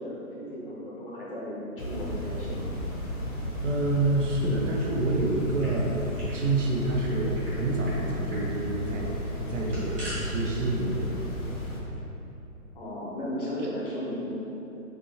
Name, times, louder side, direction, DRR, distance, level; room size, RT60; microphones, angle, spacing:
voice 1, 0.0-2.7 12.7-14.4, equal, 40° left, -6 dB, 0.7 m, -35 dB
sound 1, 1.8-11.8, equal, 70° left, 0.9 m, -34 dB
voice 2, 3.6-5.9 6.3-11.3, right 2 dB, 55° right, -2 dB, 0.6 m, -28 dB
sound 2, 5.4-6.4 6.7-6.8 7.0-7.5 7.8-8.0 8.3-8.5 9.4-10.2, equal, 40° right, 1.3 m, -43 dB
3.3 x 2.8 x 2.6 m, 3.0 s
figure-of-eight pair, 140°, 44 cm